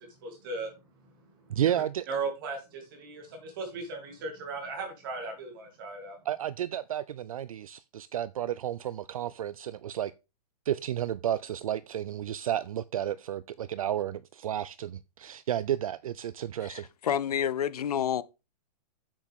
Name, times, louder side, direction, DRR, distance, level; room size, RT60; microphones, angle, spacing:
voice 1, 0.2-0.7 2.1-6.2, right 4 dB, 30° right, 2.9 m, -37 dB
voice 2, 1.5-2.1 6.2-10.1 10.7-16.9, right 11 dB, 55° right, 0.4 m, -32 dB
voice 3, 16.6-18.2, left 9 dB, 65° left, 0.7 m, -29 dB
7.4 x 7.2 x 3.5 m
hypercardioid pair, 175°, 21 cm